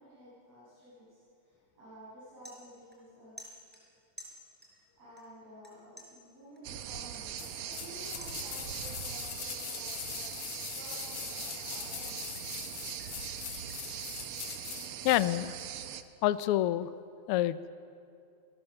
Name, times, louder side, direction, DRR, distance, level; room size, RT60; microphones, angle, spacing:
voice 1, 0.0-3.4 5.0-12.5, equal, 55° right, -10 dB, 8.1 m, -52 dB
sound 1, 1.5-1.7 2.1-3.1 3.4-4.9 5.2-5.7 6.0-8.9 9.3-9.6 10.0-12.5 12.8-14.7, equal, 5° right, 4.6 m, -53 dB
sound 2, 6.6-16.0, right 10 dB, 75° right, 1.3 m, -41 dB
sound 3, 7.4-15.3 15.6-15.7, left 12 dB, 70° left, 1.7 m, -42 dB
voice 2, 15.0-15.6 16.2-16.9 17.3-17.7, left 14 dB, 85° left, 14 dB, 1.2 m, -27 dB
28.0 x 19.0 x 6.7 m, 2.5 s
omnidirectional pair, 3.4 m